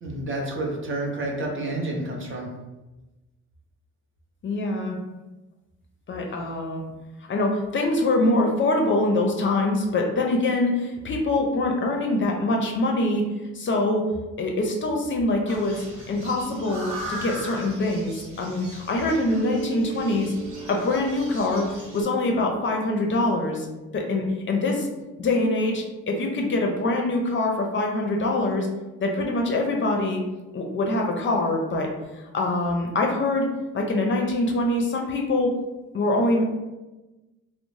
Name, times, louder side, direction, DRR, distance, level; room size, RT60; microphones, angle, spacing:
voice 1, 0.0-2.5, right 2 dB, 40° right, -1 dB, 0.7 m, -29 dB
voice 2, 4.4-5.0 6.1-6.8 7.3-13.2 13.5-14.1 14.4-20.3 20.7-23.7 23.9-24.9 25.2-28.7 29.0-30.2 30.5-31.9 32.3-33.5 33.7-35.5 35.9-36.4, left 2 dB, 40° left, 1 dB, 0.5 m, -24 dB
sound 1, 15.5-22.0, right 1 dB, 80° right, 0.9 m, -39 dB
Mallet percussion, 19.2-23.7, right 4 dB, 5° right, 0.8 m, -38 dB
2.5 x 2.0 x 3.1 m, 1.1 s
cardioid pair, 90°, 30 cm